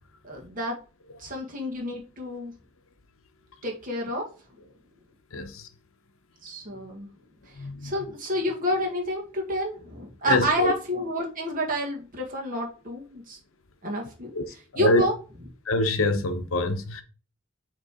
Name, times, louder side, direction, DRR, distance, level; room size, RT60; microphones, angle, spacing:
voice 1, 0.2-0.8 1.2-2.5 3.6-4.3 6.4-7.1 7.5-13.4 13.8-14.3 14.8-15.1, equal, 40° right, 1.9 m, -29 dB
voice 2, 5.3-5.7 7.5-7.9 10.3-10.7 14.3-14.4 14.7-15.0 15.7-17.0, left 2 dB, 80° left, 0.9 m, -25 dB
6.6 x 3.3 x 4.8 m
head